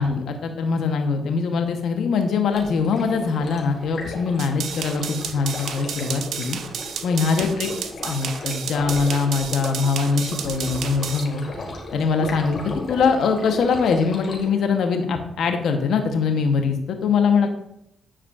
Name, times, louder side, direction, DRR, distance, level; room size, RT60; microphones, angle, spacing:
voice 1, 0.0-6.6 7.0-7.7 8.0-11.5 11.9-12.6 12.9-17.5, left 5 dB, 75° left, 5 dB, 0.9 m, -22 dB
Stream, 2.5-14.5, left 2 dB, 60° left, 1.7 m, -36 dB
sound 1, 4.4-11.2, right 7 dB, 75° right, 0.5 m, -32 dB
9.8 x 4.9 x 2.4 m, 0.78 s
supercardioid pair, 60°, 0 cm